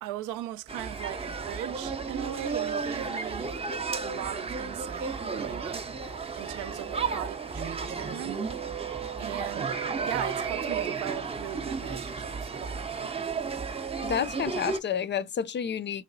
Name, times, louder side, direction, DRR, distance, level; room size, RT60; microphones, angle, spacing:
voice 1, 0.0-8.4 9.2-13.2, right 13 dB, 85° right, 0.5 m, -39 dB
sound 1, 0.7-14.8, right 5 dB, 20° right, 0.5 m, -33 dB
sound 2, 3.4-10.9, right 11 dB, 50° right, 0.8 m, -43 dB
voice 2, 14.0-16.0, left 8 dB, 40° left, 0.4 m, -30 dB
3.2 x 2.9 x 2.6 m
cardioid pair, 90°, 30 cm